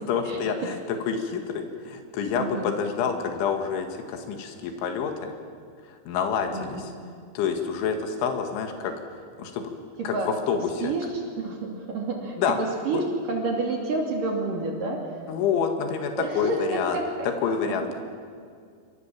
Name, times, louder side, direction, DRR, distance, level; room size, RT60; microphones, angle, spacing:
voice 1, 0.0-5.3 5.9-6.9 7.4-8.9 9.4-9.7 10.0-10.9 12.4-12.6 12.9-13.0 15.3-17.0 17.2-17.9, left 6 dB, 80° left, 5 dB, 4.3 m, -28 dB
voice 2, 2.4-2.7 6.5-6.9 10.0-10.3 10.8-15.1 16.2-17.1 17.6-17.7, right 3 dB, 50° right, 1 dB, 4.0 m, -29 dB
27.5 x 25.0 x 7.5 m, 2.2 s
omnidirectional pair, 5.4 m